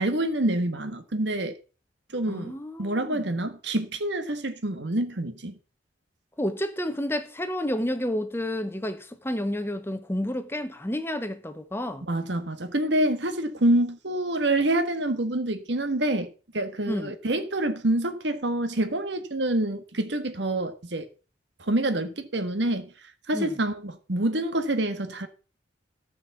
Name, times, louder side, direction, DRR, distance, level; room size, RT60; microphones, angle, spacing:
voice 1, 0.0-1.6 2.1-5.5 12.1-16.3 16.5-21.1 21.6-22.9 23.3-25.3, right 1 dB, 70° right, 1.5 m, -27 dB
voice 2, 2.3-3.2 6.4-12.1 16.9-17.1 23.3-23.6, left 1 dB, 10° left, 0.9 m, -30 dB
14.0 x 5.4 x 7.1 m
head